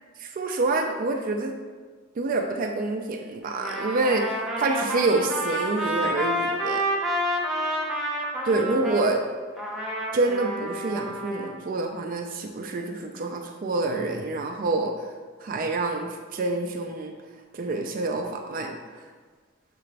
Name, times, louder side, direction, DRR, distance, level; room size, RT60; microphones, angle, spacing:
voice 1, 0.2-1.5 2.2-4.3 4.6-6.8 8.5-9.2 10.1-15.1 15.4-17.1 17.5-19.1, right 2 dB, 45° right, 3 dB, 0.4 m, -27 dB
Trumpet, 3.5-9.1 9.6-11.5, equal, ahead, 0.7 m, -29 dB
6.7 x 2.5 x 3.2 m, 1.5 s
head